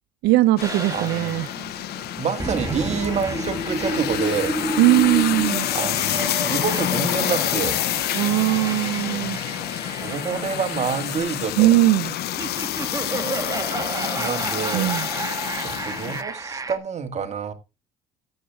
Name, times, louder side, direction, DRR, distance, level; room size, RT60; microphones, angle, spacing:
voice 1, 0.2-1.5 4.8-5.7 8.1-9.4 11.6-12.1 14.7-15.1, right 16 dB, 80° right, 0.5 m, -19 dB
sound 1, 0.6-16.2, left 14 dB, 70° left, 0.7 m, -28 dB
sound 2, 0.6-16.8, right 3 dB, 20° right, 1.5 m, -31 dB
voice 2, 0.9-1.3 2.2-4.6 5.7-7.8 9.8-11.8 14.2-14.9 15.3-17.5, right 6 dB, 40° right, 1.9 m, -28 dB
sound 3, 1.5-11.2, equal, ahead, 2.0 m, -44 dB
13.0 x 7.9 x 3.5 m
cardioid pair, 110°, 17 cm